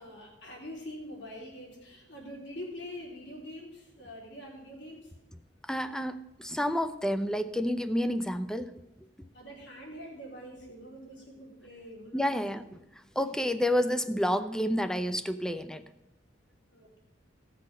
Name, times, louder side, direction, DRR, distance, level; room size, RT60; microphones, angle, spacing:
voice 1, 0.0-5.1 9.3-12.4 16.7-17.0, equal, 65° left, -2 dB, 3.4 m, -44 dB
voice 2, 5.6-8.7 12.1-12.8 13.2-15.8, equal, 5° left, 11 dB, 0.5 m, -29 dB
16.5 x 6.4 x 5.4 m, 0.88 s
head